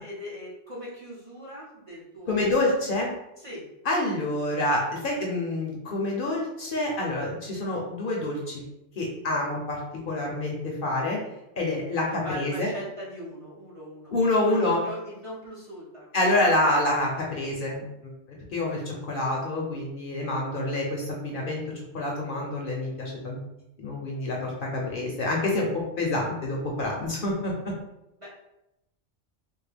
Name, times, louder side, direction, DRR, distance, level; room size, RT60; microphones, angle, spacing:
voice 1, 0.0-2.6 3.4-3.7 12.0-14.1 14.5-16.1 28.2-28.5, equal, 35° right, -6 dB, 0.6 m, -39 dB
voice 2, 2.3-3.1 3.8-8.6 9.0-11.2 11.6-12.7 14.1-14.8 16.1-18.1 18.5-21.6 21.9-23.4 23.8-25.7 26.0-27.7, left 2 dB, 55° left, -2 dB, 0.7 m, -27 dB
3.5 x 2.1 x 3.3 m, 0.88 s
omnidirectional pair, 1.2 m